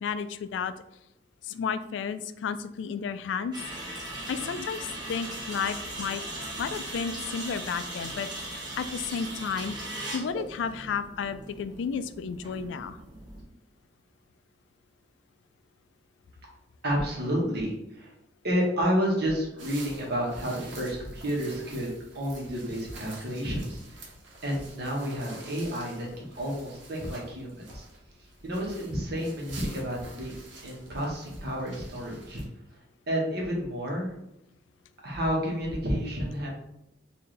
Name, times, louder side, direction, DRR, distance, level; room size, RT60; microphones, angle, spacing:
voice 1, 0.0-0.7 1.4-3.5 4.3-6.2 6.6-9.8 10.1-13.0, left 6 dB, 75° left, 12 dB, 0.3 m, -32 dB
sound 1, 3.5-13.4, right 1 dB, 25° right, 1.0 m, -39 dB
voice 2, 16.8-18.1 18.4-24.1 24.4-27.8 28.4-30.3 30.6-32.4 33.1-34.1 35.0-36.5, equal, 60° right, -2 dB, 1.2 m, -30 dB
sound 2, 19.6-32.5, right 2 dB, 90° right, 1.1 m, -48 dB
4.3 x 2.7 x 3.2 m, 0.83 s
head